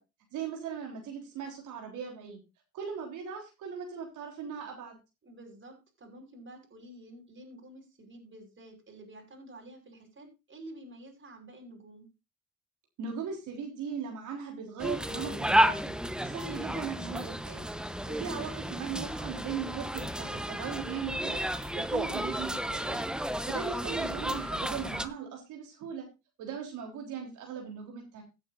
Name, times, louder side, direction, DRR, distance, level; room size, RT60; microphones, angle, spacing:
voice 1, 0.3-2.4 2.7-5.0 13.0-15.9 16.2-17.6 18.1-23.1 23.5-26.0 26.4-28.2, right 7 dB, 85° right, 0 dB, 3.8 m, -39 dB
voice 2, 5.2-12.1, right 1 dB, 40° right, 3 dB, 5.7 m, -50 dB
sound 1, 14.8-25.1, equal, 5° right, 1.0 m, -32 dB
16.5 x 8.9 x 2.6 m, 0.26 s
cardioid pair, 90°, 30 cm